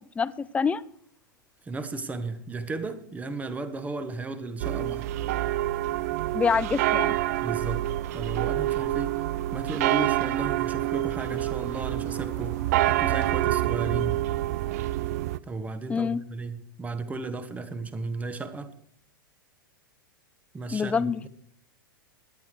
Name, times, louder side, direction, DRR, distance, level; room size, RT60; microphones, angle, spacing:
voice 1, 0.2-0.8 6.3-7.2 15.9-16.2 20.7-21.3, left 5 dB, 10° left, 18 dB, 0.5 m, -26 dB
voice 2, 1.6-5.1 7.4-7.9 8.1-9.2 9.5-12.6 12.9-14.2 15.5-18.7 20.5-21.3, right 3 dB, 15° right, 11 dB, 1.3 m, -34 dB
sound 1, 4.6-15.4, right 15 dB, 45° right, 0.5 m, -27 dB
sound 2, 6.5-14.5, right 2 dB, 60° right, 5.8 m, -51 dB
17.0 x 11.5 x 4.8 m, 0.62 s
figure-of-eight pair, 95°, 11 cm